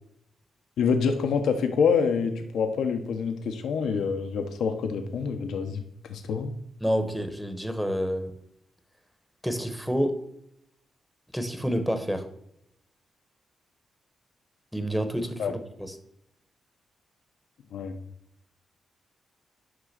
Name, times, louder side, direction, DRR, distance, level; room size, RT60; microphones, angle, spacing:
voice 1, 0.8-5.8 6.1-6.5 15.4-15.5 17.7-17.9, left 6 dB, 85° left, 6 dB, 1.0 m, -26 dB
voice 2, 6.8-8.4 9.4-10.2 11.3-12.3 14.7-16.0, equal, ahead, 8 dB, 1.0 m, -28 dB
11.0 x 3.7 x 6.6 m, 0.75 s
cardioid pair, 125°, 0 cm